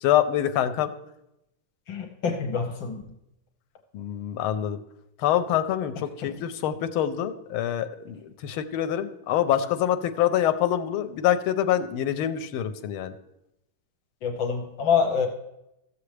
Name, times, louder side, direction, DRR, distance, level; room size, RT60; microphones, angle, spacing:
voice 1, 0.0-0.9 3.9-4.8 5.2-13.1, left 11 dB, 85° left, 9 dB, 1.5 m, -25 dB
voice 2, 1.9-3.0 6.2-6.3 14.2-15.3, left 6 dB, 70° left, 4 dB, 1.6 m, -26 dB
14.5 x 6.9 x 3.3 m, 0.87 s
omnidirectional pair, 2.3 m